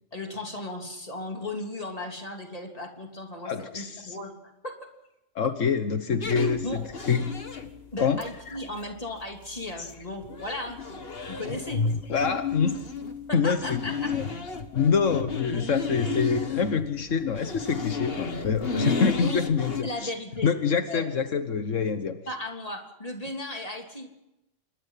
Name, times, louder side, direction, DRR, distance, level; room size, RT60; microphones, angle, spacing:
voice 1, 0.1-4.3 4.6-4.9 5.4-5.5 6.6-6.9 7.9-10.8 11.3-11.8 12.2-12.3 13.3-14.2 16.0-16.2 19.2-19.4 19.8-20.5 20.9-21.1 22.3-24.1, left 1 dB, 30° left, 2 dB, 3.4 m, -36 dB
voice 2, 3.4-4.2 5.3-7.4 8.0-8.2 8.5-8.6 9.8-9.9 12.1-12.9 13.3-13.8 14.1-14.2 14.7-20.1 20.4-22.2, left 6 dB, 80° left, 9 dB, 1.5 m, -26 dB
sound 1, 6.2-19.8, left 4 dB, 50° left, 1.8 m, -32 dB
26.5 x 22.0 x 5.8 m, 0.89 s
omnidirectional pair, 1.3 m